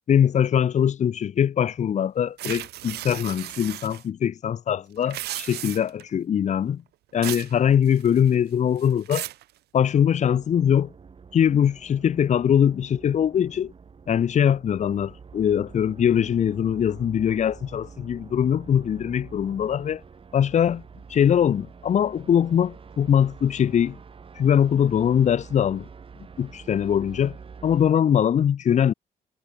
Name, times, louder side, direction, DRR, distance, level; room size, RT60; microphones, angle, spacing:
voice 1, 0.1-6.8 7.1-9.3 9.7-10.9 11.3-13.7 14.1-20.0 20.3-20.8 21.1-24.0 24.4-25.9 26.4-27.4 27.6-28.9, left 9 dB, 45° left, 1.0 m, -22 dB
sound 1, 2.4-4.0 5.0-6.0 7.2-7.5 7.9-8.3 8.8-9.4, right 15 dB, 85° right, 0.8 m, -35 dB
sound 2, 10.1-27.9, right 5 dB, 35° right, 5.5 m, -46 dB
cardioid pair, 135°, 16 cm